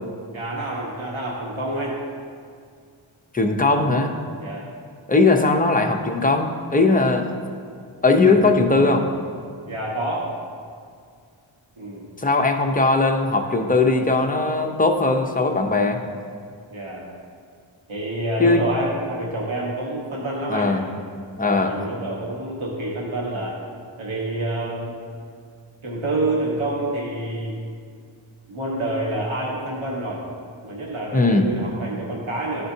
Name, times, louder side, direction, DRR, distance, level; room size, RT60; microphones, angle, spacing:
voice 1, 0.3-1.9 4.4-4.6 8.2-8.3 9.6-10.3 11.8-12.1 16.7-17.0 17.9-20.7 21.3-23.6 24.0-25.0 25.8-27.5 28.5-30.2 30.6-32.6, right 1 dB, 75° right, -4 dB, 1.3 m, -28 dB
voice 2, 3.3-4.1 5.1-7.3 8.0-9.1 12.2-16.0 18.4-18.6 20.5-20.8 21.4-21.7 31.1-31.5, left 3 dB, 15° left, 3 dB, 0.6 m, -19 dB
12.5 x 4.4 x 2.7 m, 2.2 s
wide cardioid pair, 70°, 49 cm